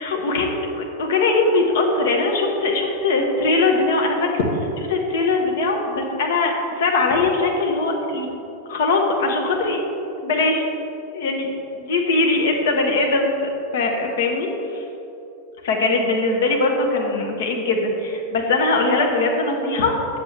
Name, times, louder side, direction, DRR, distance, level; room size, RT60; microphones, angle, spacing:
voice 1, 0.0-8.3 8.7-9.8 10.2-10.6 11.1-11.5 11.7-13.4 13.7-14.8 15.6-20.2, left 3 dB, 60° left, 2 dB, 1.0 m, -21 dB
8.1 x 6.5 x 3.3 m, 3.0 s
figure-of-eight pair, 90°, 0 cm